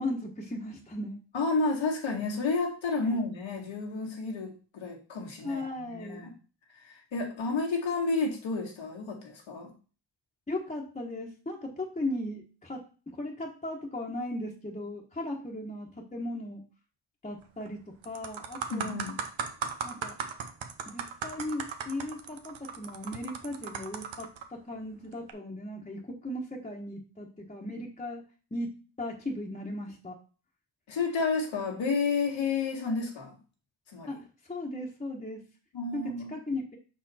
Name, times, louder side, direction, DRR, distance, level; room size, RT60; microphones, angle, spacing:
voice 1, 0.0-1.2 5.4-6.3 10.5-16.6 17.2-19.1 19.8-20.2 20.9-28.2 28.5-28.7 29.0-30.1 34.1-34.2 34.5-35.4 35.9-36.0 36.3-36.6, left 1 dB, 15° left, -2 dB, 1.2 m, -37 dB
voice 2, 1.3-6.3 6.8-9.7 18.7-19.2 30.9-33.4 33.9-34.2 35.7-36.3, left 4 dB, 85° left, 0 dB, 1.9 m, -31 dB
sound 1, 17.4-17.7 18.0-24.4 25.1-25.3, right 6 dB, 80° right, 0.9 m, -37 dB
5.8 x 4.6 x 4.2 m, 0.37 s
cardioid pair, 75°, 45 cm